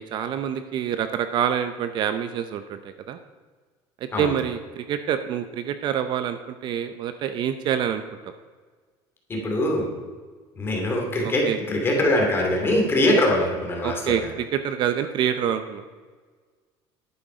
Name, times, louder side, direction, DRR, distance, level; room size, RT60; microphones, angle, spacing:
voice 1, 0.0-3.2 4.2-8.3 11.5-11.6 13.8-15.8, right 9 dB, 45° right, 10 dB, 0.6 m, -26 dB
voice 2, 9.3-9.9 10.5-14.3, left 1 dB, 20° left, 0 dB, 2.6 m, -23 dB
11.0 x 9.0 x 5.1 m, 1.5 s
cardioid pair, 155°, 11 cm